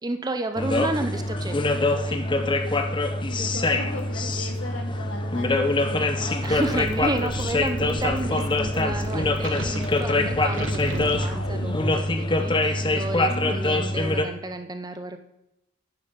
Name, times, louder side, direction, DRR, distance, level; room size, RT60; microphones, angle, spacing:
voice 1, 0.0-2.3 6.4-15.2, right 2 dB, 20° right, 8 dB, 0.6 m, -31 dB
sound 1, 0.6-14.3, left 2 dB, 25° left, 0.7 m, -24 dB
voice 2, 3.3-6.5 7.8-7.9 10.3-10.7 13.2-13.6, left 2 dB, 60° left, 1 dB, 2.4 m, -38 dB
sound 2, 6.4-12.0, equal, 85° left, 1.6 m, -36 dB
sound 3, 9.1-12.0, right 3 dB, 65° right, 0.9 m, -37 dB
10.0 x 6.9 x 6.7 m, 0.87 s
head